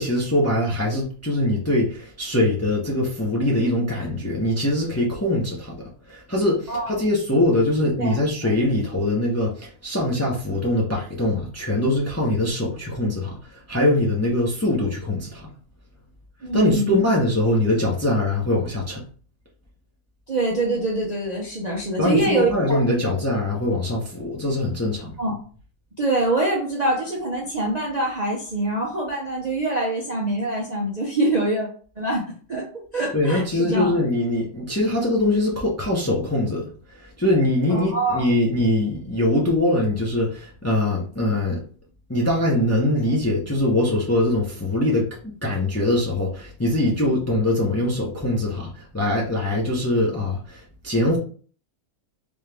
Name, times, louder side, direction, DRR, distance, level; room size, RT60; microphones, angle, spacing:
voice 1, 0.0-5.7 6.1-13.4 13.7-15.4 16.5-19.0 22.0-25.1 33.1-36.7 37.2-41.6 42.1-45.1 45.4-48.7 48.9-51.2, left 1 dB, 15° left, 0.7 m, -22 dB
voice 2, 16.4-17.0 20.3-22.8 25.2-25.4 26.0-31.7 32.0-33.9 37.7-38.3, right 2 dB, 35° right, 0.7 m, -24 dB
3.5 x 3.1 x 3.4 m
omnidirectional pair, 1.7 m